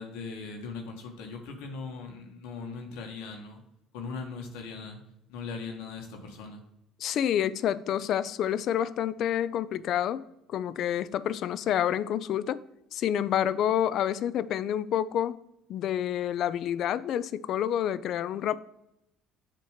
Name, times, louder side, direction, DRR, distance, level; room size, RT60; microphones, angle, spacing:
voice 1, 0.0-3.6 3.9-5.0 5.3-6.6, left 4 dB, 85° left, 1.3 m, -39 dB
voice 2, 7.0-12.6 12.9-15.4 15.7-18.6, left 10 dB, 60° left, 0.3 m, -28 dB
7.6 x 2.9 x 5.0 m
supercardioid pair, 95°, 0 cm